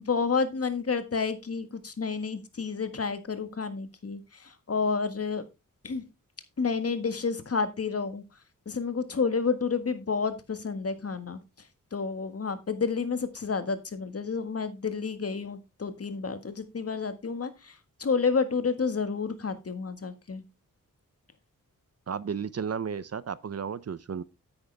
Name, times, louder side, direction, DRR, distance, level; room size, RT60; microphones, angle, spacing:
voice 1, 0.0-5.4 5.8-6.0 6.6-8.2 8.7-11.4 11.9-20.4, left 5 dB, 45° left, 1.7 m, -30 dB
voice 2, 22.1-24.2, right 6 dB, 50° right, 0.7 m, -33 dB
9.7 x 8.9 x 3.4 m
wide cardioid pair, 85°, 33 cm